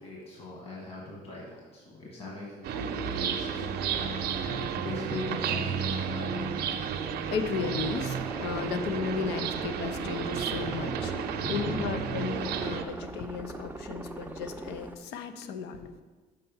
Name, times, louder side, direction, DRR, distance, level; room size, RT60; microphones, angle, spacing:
voice 1, 0.0-6.5 11.3-11.9, left 2 dB, 35° left, -4 dB, 1.7 m, -40 dB
sound 1, 2.6-12.8, right 7 dB, 70° right, 0.6 m, -32 dB
voice 2, 6.9-16.0, left 6 dB, 80° left, 9 dB, 0.6 m, -35 dB
sound 2, 7.6-15.0, right 3 dB, 10° right, 0.5 m, -41 dB
6.6 x 4.4 x 5.4 m, 1.3 s
cardioid pair, 110°, 17 cm